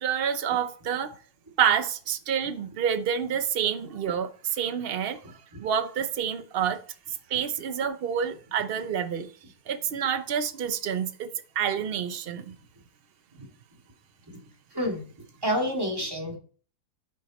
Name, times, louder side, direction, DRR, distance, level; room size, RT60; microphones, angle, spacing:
voice 1, 0.0-1.1 1.6-5.2 5.6-6.8 7.1-9.3 9.7-11.3 11.6-12.5 13.4-13.5, right 8 dB, 80° right, 0.5 m, -28 dB
voice 2, 15.4-16.4, equal, 15° right, 2.0 m, -28 dB
9.6 x 5.7 x 4.1 m
omnidirectional pair, 1.9 m